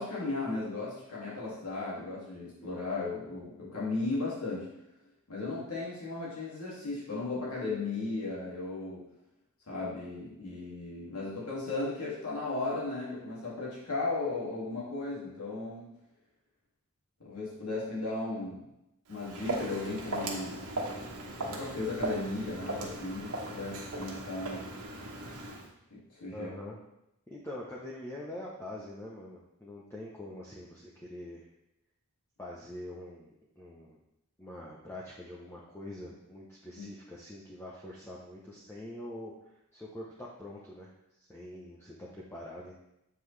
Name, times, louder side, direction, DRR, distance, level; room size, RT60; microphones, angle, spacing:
voice 1, 0.0-4.7 5.3-9.0 9.7-15.9 17.2-18.6 19.1-20.6 21.5-24.7 25.9-26.5 36.8-36.9, left 3 dB, 85° left, -6 dB, 2.2 m, -36 dB
Walk footsteps, 19.1-25.7, right 2 dB, 90° right, 1.2 m, -38 dB
voice 2, 26.3-26.8 27.3-31.5 32.4-34.0 34.4-40.9 41.2-42.8, left 1 dB, 10° left, -4 dB, 0.7 m, -44 dB
7.8 x 5.3 x 3.2 m, 0.86 s
head